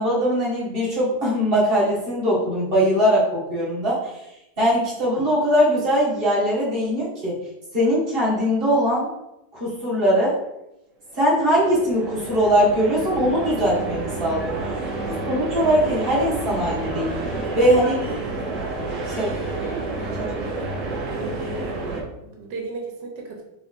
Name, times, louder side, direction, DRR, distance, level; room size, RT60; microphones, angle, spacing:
voice 1, 0.0-4.1 4.6-7.3 7.7-9.1 9.5-10.4 11.1-14.5 15.3-17.9 19.2-19.3, equal, 35° right, -7 dB, 1.6 m, -21 dB
sound 1, 11.1-22.0, right 3 dB, 55° right, 1.1 m, -29 dB
voice 2, 17.8-18.2 19.1-19.8 20.1-20.7 21.1-21.8 22.2-23.4, right 3 dB, 90° right, 0 dB, 1.5 m, -35 dB
3.9 x 3.6 x 3.7 m, 0.90 s
omnidirectional pair, 1.8 m